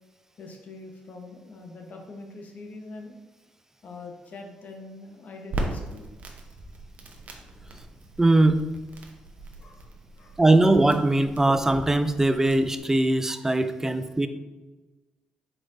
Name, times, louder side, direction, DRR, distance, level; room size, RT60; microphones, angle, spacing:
voice 1, 0.4-3.1 3.8-6.0 9.6-9.9 10.2-10.4, left 3 dB, 55° left, 3 dB, 0.9 m, -43 dB
Crackle, 5.5-12.8, right 1 dB, 55° right, 0.8 m, -39 dB
voice 2, 8.2-8.6 10.4-14.3, right 2 dB, 15° right, 10 dB, 0.4 m, -21 dB
4.4 x 4.4 x 2.6 m, 1.1 s
supercardioid pair, 60°, 3 cm